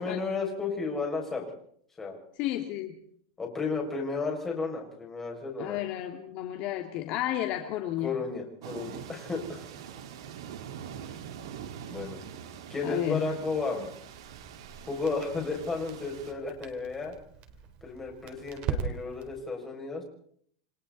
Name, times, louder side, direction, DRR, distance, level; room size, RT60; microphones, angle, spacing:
voice 1, 0.0-1.5 2.0-2.2 3.4-5.8 8.0-9.7 11.9-12.2 12.7-13.9 14.9-17.1 17.8-20.0, left 4 dB, 10° left, 0 dB, 6.7 m, -33 dB
voice 2, 2.4-3.0 5.6-8.2 12.8-13.3, left 13 dB, 45° left, 4 dB, 2.5 m, -32 dB
sound 1, 8.6-16.3, right 8 dB, 85° right, 4.2 m, -44 dB
Crackle, 14.1-19.4, right 6 dB, 45° right, 4.4 m, -40 dB
29.5 x 23.0 x 4.2 m, 0.64 s
supercardioid pair, 150°, 3 cm